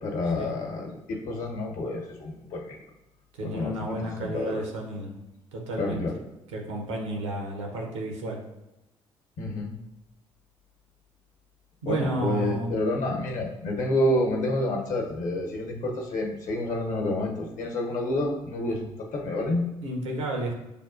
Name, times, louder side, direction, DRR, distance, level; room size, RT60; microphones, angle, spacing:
voice 1, 0.0-2.8 3.4-4.7 5.8-6.2 9.4-9.7 11.8-19.7, left 1 dB, 55° left, 1 dB, 0.9 m, -29 dB
voice 2, 3.4-5.1 5.5-6.0 6.5-8.4 11.8-12.7 19.8-20.5, right 1 dB, 80° right, 1 dB, 0.8 m, -31 dB
6.7 x 2.4 x 2.4 m, 0.96 s
figure-of-eight pair, 45°, 15 cm